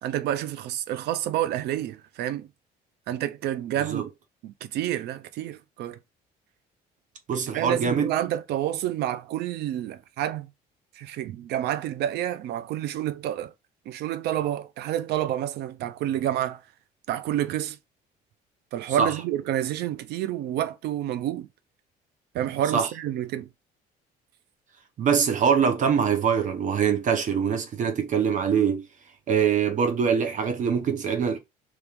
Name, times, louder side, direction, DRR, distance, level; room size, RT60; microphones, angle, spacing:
voice 1, 0.0-2.5 3.1-4.1 4.4-6.0 7.3-10.5 11.0-13.5 13.9-16.6 17.1-17.8 18.7-21.5 22.3-23.5, right 12 dB, 75° right, 0.5 m, -29 dB
voice 2, 7.3-8.1 19.0-19.1 22.7-22.9 25.0-28.9 29.3-31.4, right 7 dB, 50° right, 0.8 m, -23 dB
3.1 x 3.0 x 3.4 m
cardioid pair, 110°, 17 cm